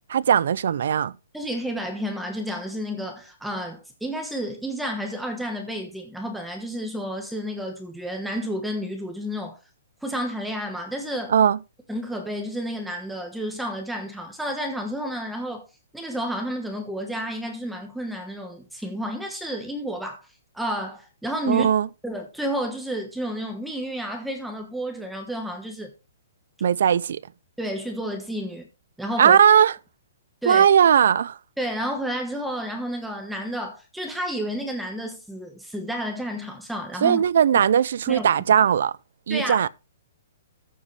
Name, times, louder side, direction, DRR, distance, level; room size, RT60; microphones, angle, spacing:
voice 1, 0.1-1.1 11.3-11.6 21.5-21.9 26.6-27.2 29.2-29.7 30.5-31.4 37.0-38.9 39.3-39.7, right 8 dB, 55° right, 0.4 m, -18 dB
voice 2, 1.3-9.6 10.0-11.3 11.9-15.7 15.9-20.2 20.5-21.7 22.0-25.9 27.6-28.7 29.0-29.4 30.4-30.7 31.6-37.2 38.1-38.3 39.3-39.7, equal, ahead, 1.2 m, -31 dB
14.0 x 7.3 x 3.2 m
hypercardioid pair, 180°, 0 cm